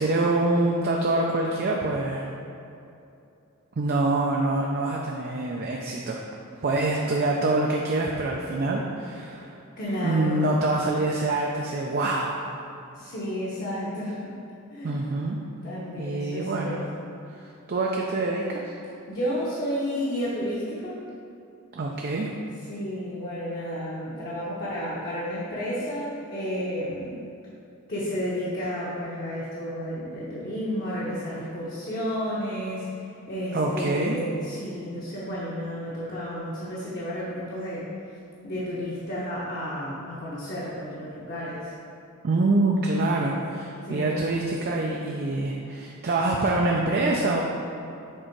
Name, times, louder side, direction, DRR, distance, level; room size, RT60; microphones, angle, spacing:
voice 1, 0.0-2.3 3.8-6.2 6.6-9.6 10.0-12.4 14.8-15.4 16.0-16.8 17.3-18.7 21.7-22.3 33.5-34.2 42.2-47.4, right 2 dB, 45° right, -1 dB, 0.4 m, -25 dB
voice 2, 9.8-10.5 12.9-14.3 14.7-15.0 15.6-16.8 19.1-21.0 22.7-27.2 27.9-37.9 38.4-41.7 43.2-43.3 43.9-44.3, equal, 45° left, -8 dB, 0.9 m, -32 dB
6.6 x 3.7 x 4.5 m, 2.7 s
head